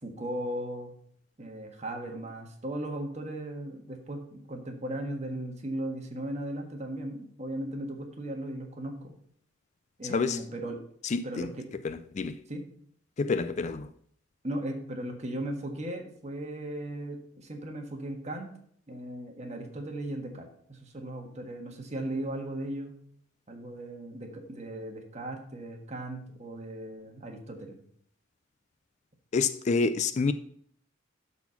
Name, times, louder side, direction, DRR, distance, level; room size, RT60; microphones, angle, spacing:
voice 1, 0.0-1.0 1.4-9.1 10.0-10.8 11.2-11.6 12.5-12.6 14.4-18.5 18.9-23.0 23.5-27.8, right 1 dB, 35° right, 1.5 m, -37 dB
voice 2, 11.0-11.5 11.8-12.4 13.2-13.9 29.3-30.3, left 4 dB, 35° left, 0.4 m, -28 dB
11.5 x 4.3 x 5.8 m
head